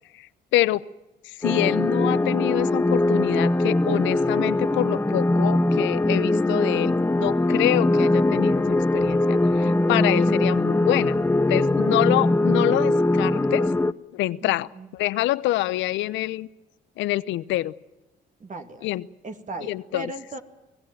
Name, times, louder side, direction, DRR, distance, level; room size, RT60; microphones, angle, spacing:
voice 1, 0.5-0.8 1.2-11.2 11.5-13.7 14.1-16.5 17.0-17.7 18.8-19.1 19.7-20.1, left 16 dB, 80° left, 17 dB, 0.8 m, -26 dB
sound 1, 1.4-13.9, left 2 dB, 10° left, 1.0 m, -21 dB
voice 2, 14.4-14.9 18.4-18.9 19.2-20.4, right 2 dB, 40° right, 6 dB, 2.6 m, -37 dB
25.0 x 17.0 x 9.1 m, 1.0 s
supercardioid pair, 65°, 19 cm